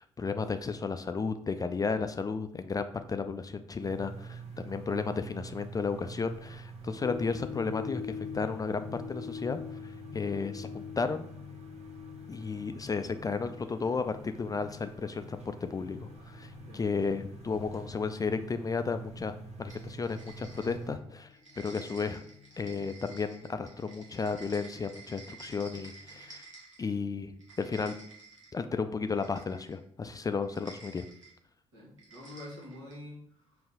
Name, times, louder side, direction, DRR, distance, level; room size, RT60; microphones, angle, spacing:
voice 1, 0.0-11.3 12.3-19.3 19.6-21.3 21.6-22.2 22.6-26.5 26.8-27.9 28.5-31.1, left 4 dB, 25° left, 9 dB, 0.3 m, -33 dB
sound 1, 3.8-21.0, right 3 dB, 45° right, 1.1 m, -47 dB
sound 2, 7.0-26.4, left 7 dB, 55° left, 0.6 m, -47 dB
voice 2, 16.7-17.2 31.7-33.7, left 1 dB, 75° right, -3 dB, 1.4 m, -48 dB
sound 3, 19.7-21.0 21.3-26.9 27.3-28.6 29.1-29.8 30.4-31.3 32.0-33.0, right 3 dB, 90° right, 0.8 m, -51 dB
5.3 x 2.5 x 3.7 m, 0.65 s
figure-of-eight pair, 40°, 16 cm